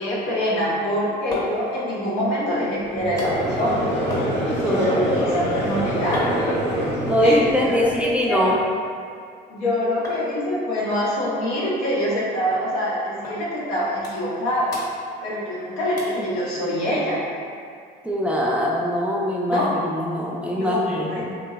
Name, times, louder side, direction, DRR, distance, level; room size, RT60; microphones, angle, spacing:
voice 1, 0.0-3.9 4.7-6.5 7.2-8.4 9.5-14.8 15.2-17.2 19.5-19.7 20.6-21.3, equal, 85° left, -8 dB, 0.9 m, -25 dB
sound 1, 1.0-8.7 9.0-9.7 10.0-10.2 10.5-10.6 10.9-12.2 12.5-12.7 13.2-13.4 13.7-14.4 14.7-15.6 16.0-16.2 16.7-16.8, left 1 dB, 15° left, 0.9 m, -36 dB
Conversation / Crowd, 2.9-8.2, equal, 55° left, 1.1 m, -25 dB
voice 2, 7.0-8.6 18.0-21.3, left 1 dB, 5° right, -4 dB, 0.4 m, -22 dB
2.9 x 2.7 x 2.3 m, 2.3 s
supercardioid pair, 85°, 21 cm